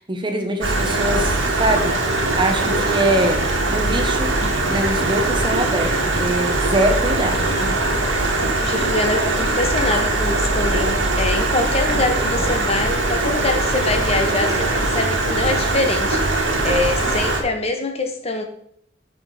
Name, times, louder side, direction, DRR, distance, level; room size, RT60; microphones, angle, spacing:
voice 1, 0.0-2.0 2.3-4.4 4.7-7.7, right 1 dB, 25° right, 5 dB, 1.0 m, -23 dB
Stream, 0.6-17.4, right 2 dB, 80° right, 1.7 m, -21 dB
voice 2, 8.6-18.4, left 3 dB, 35° left, 6 dB, 0.9 m, -24 dB
6.2 x 5.0 x 6.5 m, 0.69 s
head